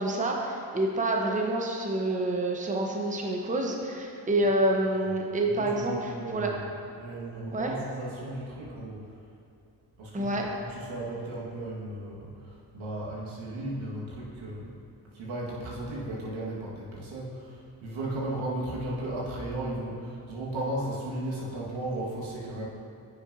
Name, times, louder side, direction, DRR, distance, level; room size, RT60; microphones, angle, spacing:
voice 1, 0.0-6.5 7.5-7.7 10.1-10.4, right 1 dB, 15° right, 0 dB, 0.9 m, -28 dB
voice 2, 5.4-6.6 7.0-9.1 10.0-14.7 15.1-22.7, right 1 dB, 75° right, -5 dB, 1.8 m, -35 dB
9.4 x 6.2 x 2.7 m, 2.6 s
supercardioid pair, 55°, 46 cm